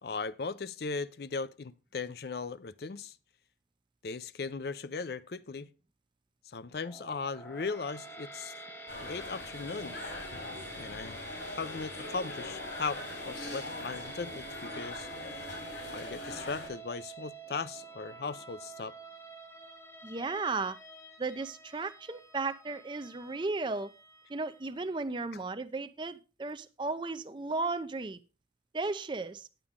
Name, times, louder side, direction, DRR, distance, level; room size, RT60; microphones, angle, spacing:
voice 1, 0.0-3.2 4.0-5.7 6.5-8.5 9.0-10.0 10.8-15.1 15.9-19.0, left 4 dB, 60° left, 0.5 m, -38 dB
sound 1, 6.8-25.0, right 2 dB, 15° left, 0.9 m, -48 dB
sound 2, 8.9-16.7, left 2 dB, 85° left, 3.7 m, -42 dB
voice 2, 20.0-20.8 21.2-23.9 24.3-28.2 28.7-29.5, right 3 dB, 25° right, 0.5 m, -35 dB
9.8 x 8.9 x 3.6 m
head